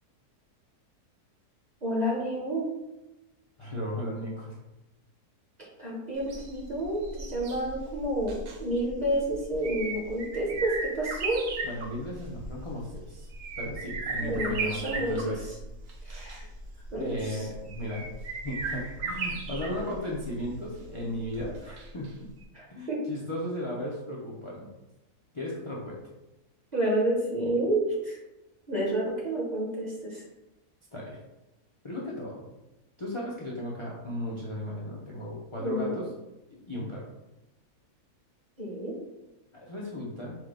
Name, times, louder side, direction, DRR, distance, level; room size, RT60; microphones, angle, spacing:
voice 1, 1.8-2.6 5.6-11.4 14.2-15.3 16.0-16.4 16.9-17.4 22.5-23.0 26.7-28.2 28.7-30.2 35.6-36.0 38.6-38.9, right 1 dB, 30° right, -4 dB, 1.0 m, -30 dB
voice 2, 3.6-4.6 11.6-13.3 13.6-15.4 16.8-18.1 18.4-22.1 22.7-24.7 25.3-26.0 30.9-31.2 31.8-32.4 33.0-36.0 36.5-37.0 39.5-40.3, left 1 dB, 35° left, -5 dB, 0.4 m, -36 dB
sound 1, 6.2-22.1 22.4-22.5, right 3 dB, 65° right, 1.0 m, -37 dB
4.5 x 2.3 x 4.8 m, 0.99 s
omnidirectional pair, 1.6 m